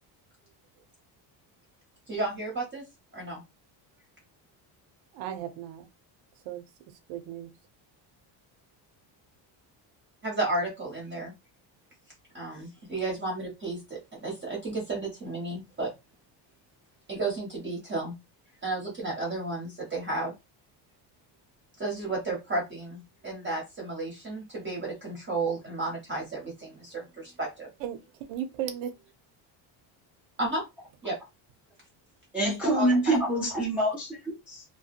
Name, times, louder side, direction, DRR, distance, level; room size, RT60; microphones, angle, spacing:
voice 1, 2.1-2.8 3.1-3.4 10.2-11.3 12.3-15.9 17.1-18.1 18.6-20.3 21.8-27.7 30.4-30.6 31.0-31.2 32.4-33.2, right 2 dB, 25° right, 0.7 m, -33 dB
voice 2, 5.1-5.9 6.5-6.6 7.1-7.5 27.8-28.0 28.3-28.9, right 10 dB, 75° right, 0.6 m, -35 dB
voice 3, 32.3-34.6, right 1 dB, 5° right, 0.3 m, -26 dB
2.7 x 2.2 x 2.4 m
cardioid pair, 150°, 47 cm